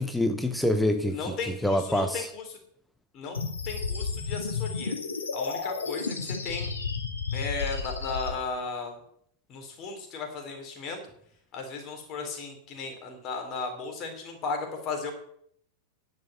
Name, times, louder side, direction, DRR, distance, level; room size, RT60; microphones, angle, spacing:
voice 1, 0.0-2.3, left 1 dB, 5° left, 7 dB, 0.9 m, -26 dB
voice 2, 1.1-2.4 3.1-3.4 3.7-5.0 5.3-6.7 7.3-9.0 9.5-11.0 11.5-15.1, left 4 dB, 35° left, 3 dB, 3.7 m, -35 dB
sound 1, 3.3-8.3, left 5 dB, 75° left, 1.9 m, -32 dB
11.0 x 6.8 x 7.9 m, 0.68 s
figure-of-eight pair, 90°, 0 cm